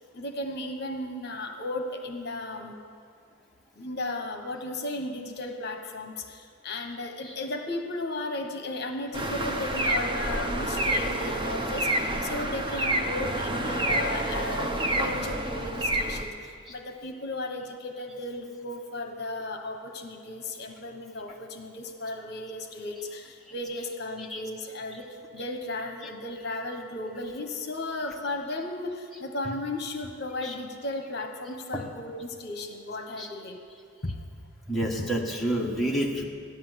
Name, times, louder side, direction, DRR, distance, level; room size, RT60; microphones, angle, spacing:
voice 1, 0.1-2.8 3.7-33.6 34.0-34.2 34.8-35.1, left 2 dB, 50° left, 4 dB, 1.3 m, -35 dB
sound 1, 9.1-16.2, right 1 dB, 25° right, 0.9 m, -28 dB
voice 2, 34.7-36.2, right 1 dB, ahead, -4 dB, 1.6 m, -29 dB
14.5 x 10.5 x 8.2 m, 2.2 s
head